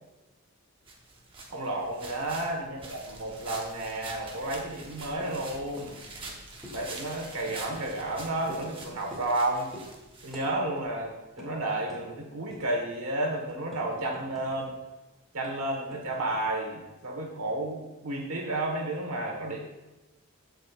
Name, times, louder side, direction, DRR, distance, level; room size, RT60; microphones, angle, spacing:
sound 1, 0.9-10.9, right 3 dB, 25° right, 0.9 m, -46 dB
voice 1, 1.5-6.0 6.7-9.7 10.2-14.7 15.3-19.6, right 1 dB, 80° right, 0 dB, 1.4 m, -32 dB
sound 2, 5.2-5.4 5.8-5.9 6.2-6.3 6.6-6.8 7.4-8.0 8.5-8.7 9.1-9.4 9.7-9.9 10.3-10.5 10.8-10.9 11.4-11.5 11.9-12.0 12.5-12.8 13.2-14.7 14.9-15.0 15.4-16.4, left 1 dB, ahead, 2.0 m, -46 dB
14.5 x 5.2 x 2.4 m, 1.1 s
head